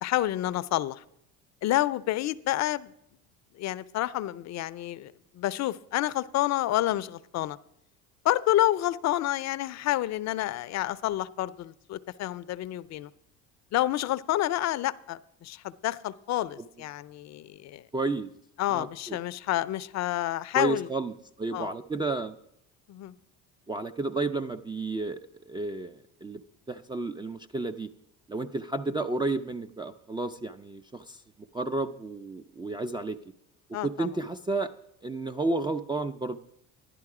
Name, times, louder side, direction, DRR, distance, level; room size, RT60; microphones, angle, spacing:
voice 1, 0.0-1.0 1.6-2.9 3.6-7.6 8.2-13.1 13.7-17.8 18.6-20.9 21.5-21.7 22.9-23.2 33.7-34.1, left 14 dB, 50° left, 16 dB, 0.5 m, -29 dB
voice 2, 17.9-18.3 18.7-19.2 20.5-21.1 21.4-22.4 23.7-25.2 25.5-26.4 26.7-27.9 28.3-31.2 31.5-33.2 33.8-34.7 35.0-36.4, right 2 dB, 15° right, 8 dB, 0.3 m, -31 dB
11.0 x 10.5 x 4.8 m, 0.75 s
supercardioid pair, 90°, 35 cm